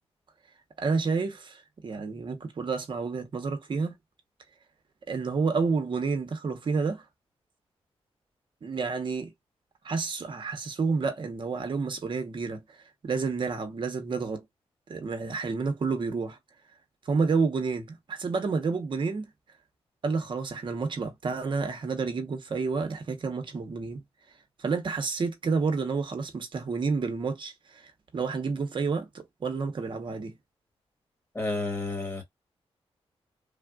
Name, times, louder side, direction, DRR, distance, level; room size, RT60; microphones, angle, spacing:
voice 1, 0.8-4.0 5.1-7.0 8.6-9.3 9.8-12.6 13.0-14.4 14.9-16.4 17.0-19.2 20.0-24.0 24.6-30.4, right 4 dB, 50° right, 0.9 m, -30 dB
voice 2, 31.3-32.2, left 2 dB, 20° left, 1.6 m, -30 dB
3.4 x 2.4 x 2.3 m
wide cardioid pair, 105°, 11 cm